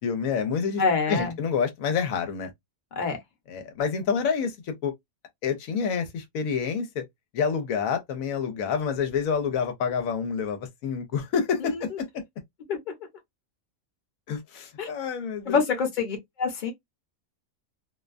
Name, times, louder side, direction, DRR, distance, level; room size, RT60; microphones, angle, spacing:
voice 1, 0.0-0.8 1.1-2.5 3.5-4.9 5.4-7.0 7.3-12.2 14.3-15.6, left 6 dB, 90° left, 1.1 m, -28 dB
voice 2, 0.8-1.3 3.0-3.2 11.6-11.8 12.7-12.9 14.8-14.9 15.5-16.7, left 5 dB, 40° left, 0.8 m, -26 dB
2.6 x 2.2 x 2.4 m
omnidirectional pair, 1.4 m